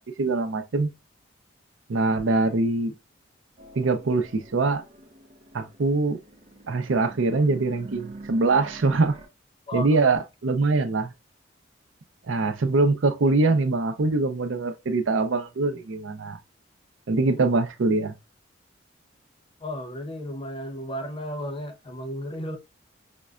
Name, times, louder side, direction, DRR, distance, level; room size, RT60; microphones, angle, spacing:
voice 1, 0.2-0.9 1.9-2.9 3.8-4.8 5.5-6.2 6.7-9.1 9.7-11.1 12.3-16.4 17.1-18.2, right 3 dB, 85° right, 0.6 m, -23 dB
sound 1, 3.6-9.3, right 2 dB, 35° right, 0.6 m, -46 dB
voice 2, 9.7-10.0 19.6-22.6, equal, 30° left, 0.5 m, -34 dB
5.1 x 2.2 x 2.3 m
head